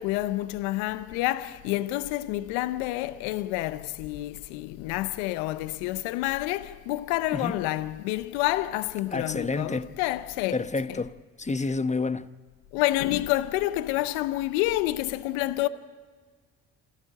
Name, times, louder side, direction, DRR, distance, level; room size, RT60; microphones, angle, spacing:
voice 1, 0.0-10.6 10.9-11.0 12.7-15.7, left 16 dB, 80° left, 0.8 m, -28 dB
voice 2, 9.1-9.9 10.5-12.3, left 3 dB, 20° left, 1.1 m, -29 dB
27.5 x 14.0 x 9.6 m
hypercardioid pair, 45°, 39 cm